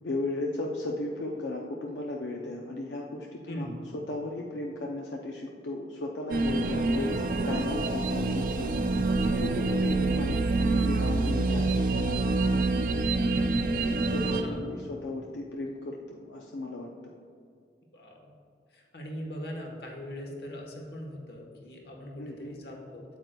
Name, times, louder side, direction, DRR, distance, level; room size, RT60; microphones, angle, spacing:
voice 1, 0.0-8.7 9.2-12.2 13.8-16.9 22.2-22.6, left 2 dB, 85° left, -1 dB, 0.5 m, -35 dB
sound 1, 6.3-14.4, right 3 dB, 50° right, 0.4 m, -26 dB
voice 2, 13.3-13.8 14.1-14.7 17.9-18.3 18.7-23.0, equal, 65° left, 0 dB, 1.2 m, -41 dB
8.1 x 7.9 x 2.3 m, 2.3 s
head